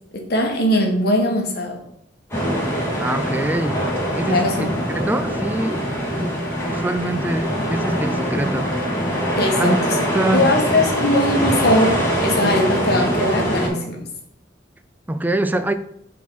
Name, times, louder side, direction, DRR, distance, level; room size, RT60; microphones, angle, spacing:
voice 1, 0.1-1.8 4.3-4.6 9.4-9.9 10.3-14.0, left 1 dB, 60° left, 2 dB, 1.3 m, -20 dB
sound 1, 2.3-13.7, equal, 15° left, 1.9 m, -23 dB
voice 2, 3.0-3.8 4.2-5.9 6.2-6.4 6.7-8.7 9.6-10.5 15.1-15.7, right 1 dB, 10° right, 10 dB, 0.3 m, -24 dB
5.0 x 3.8 x 5.4 m, 0.73 s
head